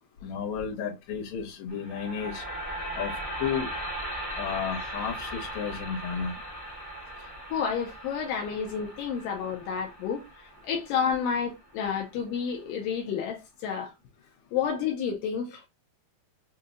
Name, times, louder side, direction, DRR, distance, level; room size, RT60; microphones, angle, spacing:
voice 1, 0.2-2.4 3.0-3.1 3.4-3.7 4.4-6.3, left 7 dB, 60° left, 2.1 m, -32 dB
sound 1, 1.7-11.8, equal, 15° left, 1.4 m, -38 dB
voice 2, 7.2-13.9 14.5-15.6, left 7 dB, 85° left, 2.0 m, -30 dB
6.5 x 2.7 x 2.4 m
omnidirectional pair, 4.8 m